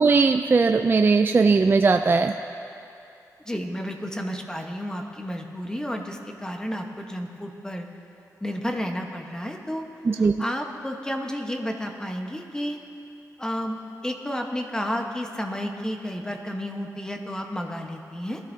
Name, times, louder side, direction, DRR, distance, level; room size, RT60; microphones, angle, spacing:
voice 1, 0.0-2.4 10.0-10.3, right 4 dB, 35° right, 6 dB, 0.3 m, -19 dB
voice 2, 3.5-7.9 8.4-9.8 10.2-12.8 13.4-13.8 14.0-18.4, equal, 10° left, 3 dB, 1.1 m, -31 dB
20.5 x 13.5 x 2.7 m, 2.7 s
wide cardioid pair, 105°, 7 cm